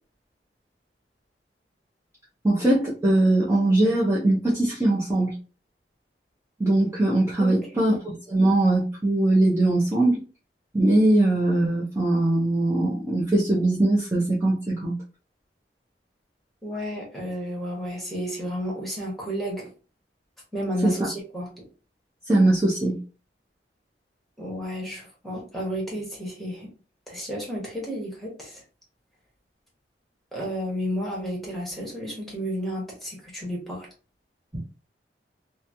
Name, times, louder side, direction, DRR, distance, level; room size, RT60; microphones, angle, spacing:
voice 1, 2.4-5.4 6.6-10.2 10.7-14.9 20.8-21.1 22.3-23.0 34.5-34.6, right 2 dB, 15° right, -7 dB, 0.6 m, -21 dB
voice 2, 7.4-7.9 16.6-19.7 20.5-21.7 24.4-26.7 27.1-28.6 30.3-33.9, equal, ahead, -3 dB, 1.1 m, -32 dB
3.0 x 2.2 x 2.6 m, 0.35 s
head